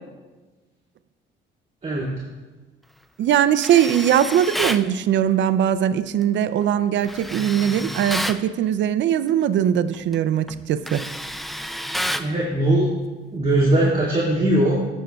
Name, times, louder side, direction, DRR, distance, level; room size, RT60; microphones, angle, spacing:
voice 1, 1.8-2.2 12.2-12.9 13.3-14.8, right 1 dB, 30° right, -7 dB, 2.1 m, -20 dB
voice 2, 3.2-11.1, right 10 dB, 65° right, 13 dB, 0.5 m, -20 dB
Tools, 3.6-4.9 7.0-8.4 9.9-10.1 10.5-12.3, equal, ahead, 0.3 m, -29 dB
15.0 x 6.3 x 2.3 m, 1.3 s
cardioid pair, 90°, 20 cm